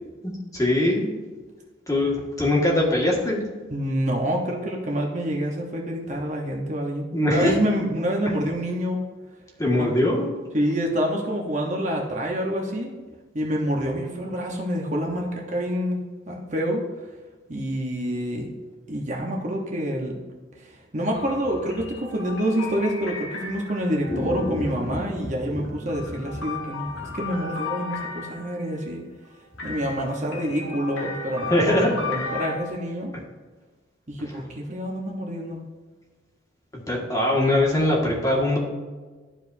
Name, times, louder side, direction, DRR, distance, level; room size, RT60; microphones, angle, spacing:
voice 1, 0.5-1.1 1.9-3.4 7.1-7.5 9.6-10.3 24.1-25.9 27.0-27.2 31.5-31.9 32.1-32.2 36.7-38.6, left 1 dB, 20° left, -3 dB, 1.8 m, -23 dB
voice 2, 3.7-9.0 9.8-9.9 10.5-12.9 13.3-16.0 16.3-16.8 17.5-18.5 18.9-20.2 20.6-29.0 29.6-31.7 32.0-33.1 34.1-35.6, equal, 40° right, 0 dB, 1.0 m, -27 dB
sound 1, 21.1-24.9 25.6-28.7 29.6-32.6, left 4 dB, 80° left, 1.3 m, -35 dB
13.0 x 4.8 x 2.7 m, 1.3 s
head